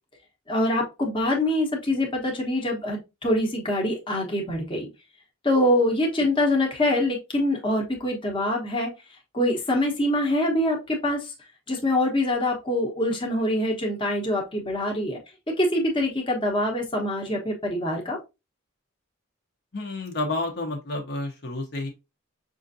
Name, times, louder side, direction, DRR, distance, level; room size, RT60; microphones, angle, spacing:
voice 1, 0.5-4.9 5.4-8.9 9.3-11.3 11.7-15.2 15.5-18.2, left 1 dB, 25° left, 0 dB, 0.9 m, -24 dB
voice 2, 19.7-21.9, left 2 dB, 50° left, 2 dB, 0.8 m, -30 dB
5.7 x 2.5 x 2.6 m, 0.25 s
head